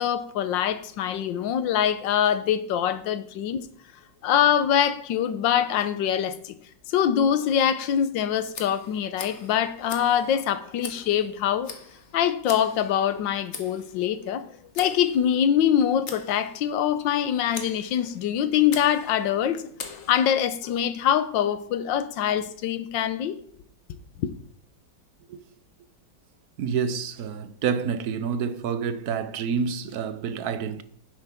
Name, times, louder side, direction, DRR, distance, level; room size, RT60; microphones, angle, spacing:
voice 1, 0.0-3.6 4.2-6.5 6.9-11.7 12.1-14.5 14.8-23.4 24.2-24.3, left 9 dB, 80° left, 1.5 m, -24 dB
Tick, 8.5-20.6, left 5 dB, 45° left, 1.3 m, -43 dB
voice 2, 26.6-30.8, right 6 dB, 60° right, 1.1 m, -28 dB
10.0 x 8.0 x 3.6 m
omnidirectional pair, 2.0 m